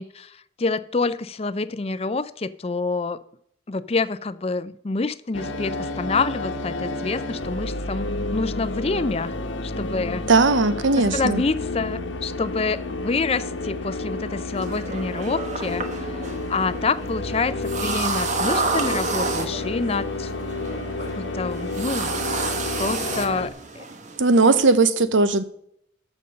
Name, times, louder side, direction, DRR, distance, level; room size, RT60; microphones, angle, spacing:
voice 1, 0.0-3.2 3.7-9.3 9.6-10.2 11.1-16.1 16.5-20.3 21.2-22.1 22.8-23.5 23.8-23.9, left 4 dB, 30° left, 0.5 m, -27 dB
sound 1, 5.3-23.5, left 2 dB, 90° left, 1.1 m, -30 dB
voice 2, 10.3-11.4 24.2-25.4, right 3 dB, 85° right, 0.8 m, -18 dB
sound 2, 14.6-24.8, right 4 dB, 40° right, 1.2 m, -30 dB
14.0 x 5.3 x 6.5 m
head